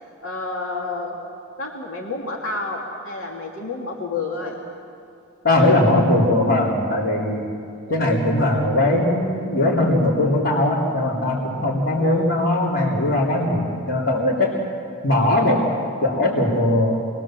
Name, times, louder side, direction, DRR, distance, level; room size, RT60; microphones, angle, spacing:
voice 1, 0.2-1.2 1.6-4.6 12.0-12.3, left 3 dB, 80° left, -1 dB, 2.5 m, -30 dB
voice 2, 5.4-7.4 7.9-14.5 15.0-15.6 16.0-17.0, left 1 dB, 60° left, -7 dB, 3.5 m, -19 dB
28.5 x 21.5 x 7.6 m, 2.5 s
head